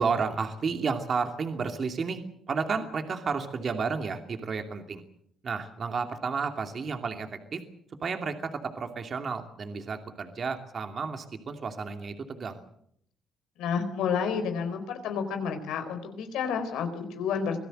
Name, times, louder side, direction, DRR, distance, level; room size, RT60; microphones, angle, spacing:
voice 1, 0.0-2.2 2.5-5.0 5.4-7.6 8.0-12.6, right 5 dB, 45° right, 5 dB, 2.7 m, -31 dB
voice 2, 13.6-17.6, left 6 dB, 90° left, 7 dB, 4.5 m, -30 dB
25.5 x 17.0 x 7.9 m, 0.70 s
cardioid pair, 90°, 0 cm